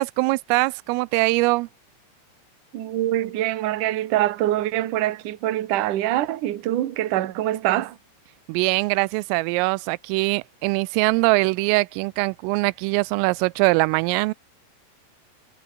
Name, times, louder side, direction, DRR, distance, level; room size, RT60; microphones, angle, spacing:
voice 1, 0.0-1.7 8.5-14.3, right 24 dB, 90° right, 3.3 m, -22 dB
voice 2, 2.7-8.0, right 14 dB, 60° right, 2.3 m, -24 dB
omnidirectional pair, 5.8 m